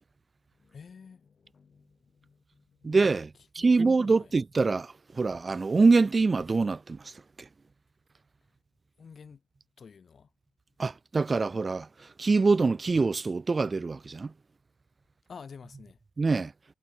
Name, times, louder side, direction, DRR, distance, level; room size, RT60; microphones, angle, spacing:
voice 1, 0.5-3.0 3.6-4.3 9.0-9.4 9.8-10.3 15.3-16.0, left 6 dB, 35° left, 1.9 m, -50 dB
voice 2, 2.8-7.1 10.8-11.9 12.2-14.3 16.2-16.5, right 4 dB, 25° right, 0.5 m, -25 dB
cardioid pair, 145°, 0 cm